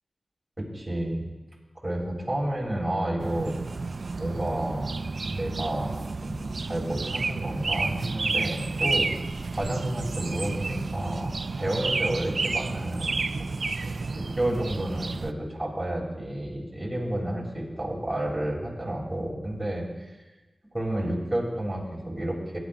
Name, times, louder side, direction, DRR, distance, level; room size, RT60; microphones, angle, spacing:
voice 1, 0.6-1.3 1.8-3.8 4.2-5.0 5.2-9.3 9.5-13.5 13.8-19.8 20.7-22.6, right 1 dB, 15° right, -4 dB, 3.3 m, -31 dB
sound 1, 3.2-15.3, right 3 dB, 60° right, 0.3 m, -31 dB
18.5 x 10.0 x 2.6 m, 1.2 s
wide cardioid pair, 75°, 0 cm